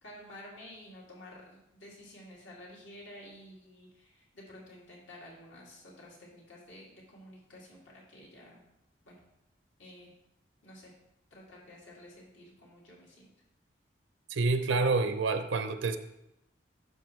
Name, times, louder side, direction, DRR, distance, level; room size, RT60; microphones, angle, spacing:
voice 1, 0.0-8.6 9.0-9.2 9.8-10.1 10.6-10.9 11.3-13.3, left 1 dB, 80° left, -4 dB, 2.6 m, -51 dB
voice 2, 14.3-16.0, right 3 dB, 85° right, 9 dB, 0.6 m, -28 dB
11.5 x 5.0 x 3.2 m, 0.85 s
head